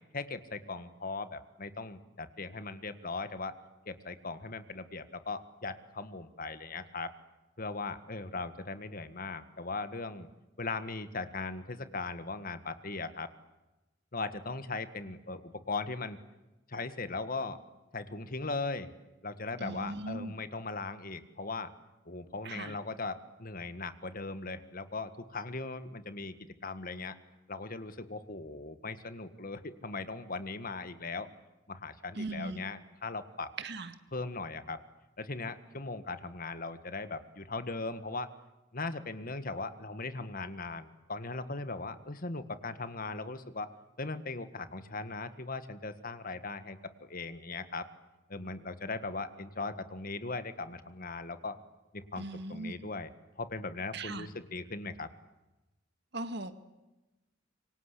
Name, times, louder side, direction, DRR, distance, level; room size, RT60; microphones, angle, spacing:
voice 1, 0.1-3.6 3.8-7.1 7.6-10.3 10.6-13.3 14.1-16.2 16.7-17.6 17.9-18.9 19.2-21.7 22.0-26.4 26.6-27.1 27.5-31.3 31.7-33.5 34.1-34.8 35.2-38.3 38.7-47.9 48.3-51.6 51.9-55.1, left 3 dB, 50° left, 11 dB, 1.8 m, -39 dB
voice 2, 19.6-20.3 22.5-22.8 32.2-32.6 33.6-33.9 52.2-52.7 53.9-54.3 56.1-56.5, right 2 dB, 60° right, 9 dB, 2.1 m, -38 dB
26.5 x 24.5 x 8.5 m, 1.0 s
head